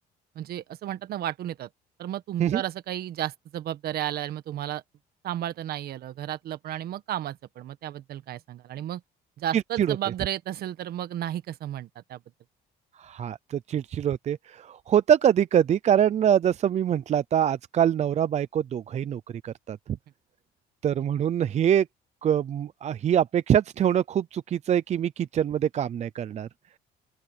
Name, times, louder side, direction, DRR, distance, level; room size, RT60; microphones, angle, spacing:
voice 1, 0.3-1.7 2.0-4.8 5.2-9.0 9.4-12.2, right 12 dB, 65° right, 1.5 m, -33 dB
voice 2, 9.5-10.0 13.0-19.8 20.8-21.9 22.2-26.5, right 9 dB, 40° right, 0.5 m, -24 dB
open air
cardioid pair, 110°, 17 cm